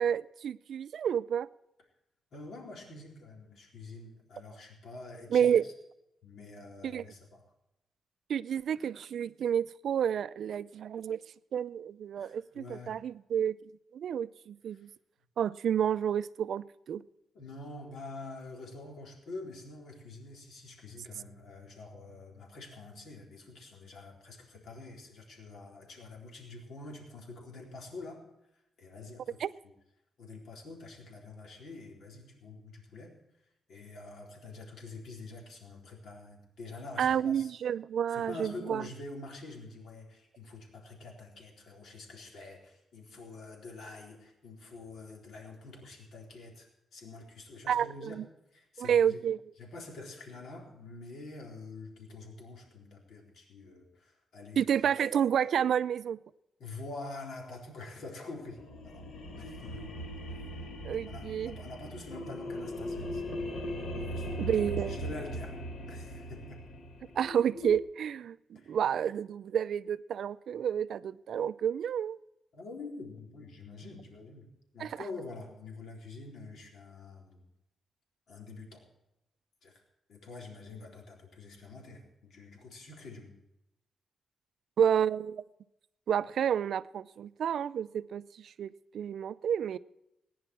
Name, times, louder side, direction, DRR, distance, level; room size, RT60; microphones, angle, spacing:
voice 1, 0.0-1.5 5.3-5.6 6.8-7.0 8.3-11.2 11.5-13.6 13.9-14.9 15.4-17.0 29.4-29.5 37.0-38.8 47.7-48.2 48.8-49.4 54.6-56.2 60.8-61.5 64.4-65.0 67.2-72.2 74.8-75.0 84.8-85.4 86.1-89.8, right 8 dB, 60° right, 0.5 m, -30 dB
voice 2, 2.3-5.7 6.2-7.4 12.2-13.0 14.7-14.9 17.3-28.2 28.8-29.5 30.2-33.1 33.7-37.5 38.1-48.2 48.5-49.3 49.6-54.6 56.6-59.1 59.4-60.0 60.3-60.4 61.1-63.2 64.1-64.5 64.9-65.6 65.9-66.6 68.5-68.8 72.5-74.5 74.7-77.4 78.3-78.8 79.6-79.8 80.1-83.4, left 3 dB, 65° left, 4.0 m, -46 dB
sound 1, 58.3-67.8, equal, 50° left, 1.7 m, -39 dB
19.0 x 10.0 x 4.7 m
wide cardioid pair, 165°, 0 cm